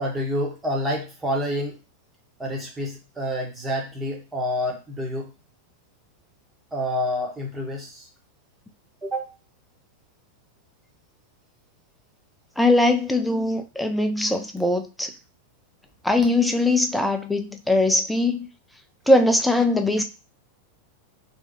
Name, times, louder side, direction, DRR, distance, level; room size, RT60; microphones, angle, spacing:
voice 1, 0.0-1.8 2.4-5.3 6.7-8.1 9.0-9.3, equal, 15° right, 0 dB, 0.9 m, -28 dB
voice 2, 12.6-15.1 16.0-18.5 19.1-20.0, left 2 dB, 5° left, 5 dB, 0.4 m, -21 dB
2.8 x 2.3 x 2.6 m, 0.31 s
figure-of-eight pair, 90°, 0 cm